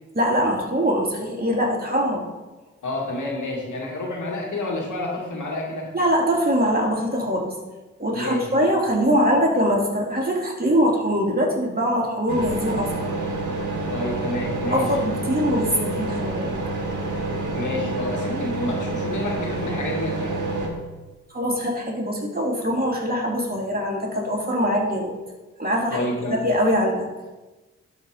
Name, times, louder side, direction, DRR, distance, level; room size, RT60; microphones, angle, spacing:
voice 1, 0.1-2.2 5.9-7.5 8.0-13.1 14.7-16.5 21.3-25.1 25.6-26.0 26.3-27.1, equal, 30° right, -2 dB, 3.4 m, -22 dB
voice 2, 2.8-5.9 8.1-8.7 13.9-15.0 17.5-20.4 25.9-26.4, left 2 dB, 65° left, -1 dB, 2.3 m, -29 dB
sound 1, 12.3-20.7, right 2 dB, 70° right, 2.1 m, -28 dB
12.0 x 4.9 x 5.1 m, 1.2 s
supercardioid pair, 40°, 32 cm